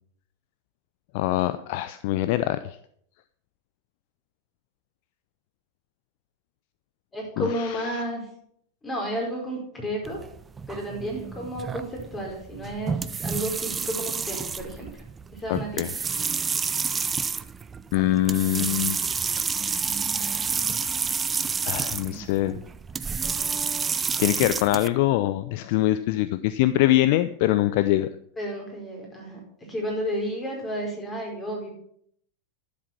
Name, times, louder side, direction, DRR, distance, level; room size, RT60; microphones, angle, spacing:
voice 1, 1.1-2.8 7.4-8.0 15.5-15.9 17.9-19.0 21.7-22.6 24.2-28.1, left 15 dB, 45° left, 13 dB, 0.5 m, -23 dB
voice 2, 7.1-8.2 8.8-10.2 10.7-14.9 15.3-15.8 28.4-31.7, equal, 15° left, 0 dB, 4.8 m, -32 dB
sound 1, 10.0-24.9, right 5 dB, 15° right, 0.5 m, -29 dB
11.0 x 7.5 x 5.9 m, 0.66 s
figure-of-eight pair, 90°, 0 cm